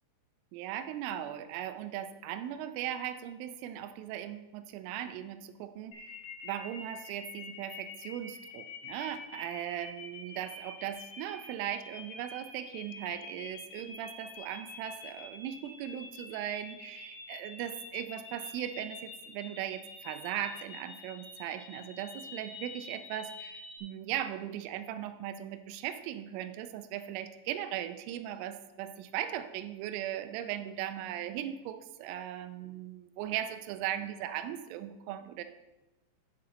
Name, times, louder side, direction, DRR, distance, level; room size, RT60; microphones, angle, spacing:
voice 1, 0.5-35.4, right 11 dB, 85° right, 10 dB, 3.1 m, -38 dB
sound 1, 5.9-23.8, left 4 dB, 75° left, 1.7 m, -47 dB
13.5 x 5.4 x 3.9 m, 1.0 s
omnidirectional pair, 5.8 m